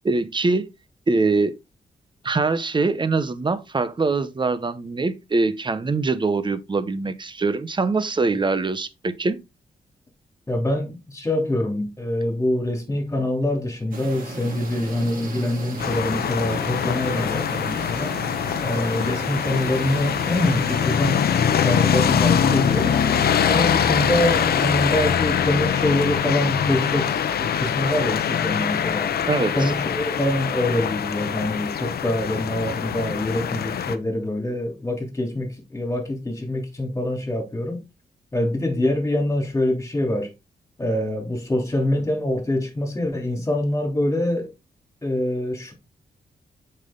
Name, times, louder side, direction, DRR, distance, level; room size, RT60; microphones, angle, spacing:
voice 1, 0.0-0.7 1.1-1.5 2.2-9.4 29.3-29.7, right 3 dB, 30° right, 0.9 m, -23 dB
voice 2, 10.5-18.2 18.6-21.2 21.5-23.0 23.4-29.1 29.5-37.8 38.3-40.3 40.8-44.5 45.0-45.7, left 1 dB, 20° left, 3.3 m, -25 dB
sound 1, 13.9-25.2, right 2 dB, 60° right, 3.0 m, -35 dB
sound 2, 15.8-34.0, left 8 dB, 85° left, 0.8 m, -23 dB
7.5 x 5.6 x 3.8 m
cardioid pair, 95°, 16 cm